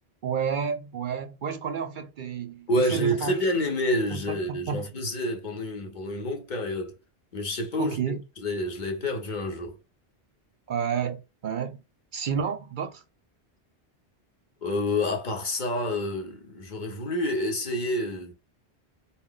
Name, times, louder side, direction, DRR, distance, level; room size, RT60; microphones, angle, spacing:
voice 1, 0.2-3.6 4.1-4.8 7.8-8.2 10.7-11.8 12.1-13.0, right 7 dB, 60° right, 0.6 m, -31 dB
voice 2, 2.7-6.9 7.3-9.8 14.6-18.3, left 1 dB, 45° left, 1.1 m, -28 dB
4.3 x 2.4 x 3.7 m
omnidirectional pair, 1.1 m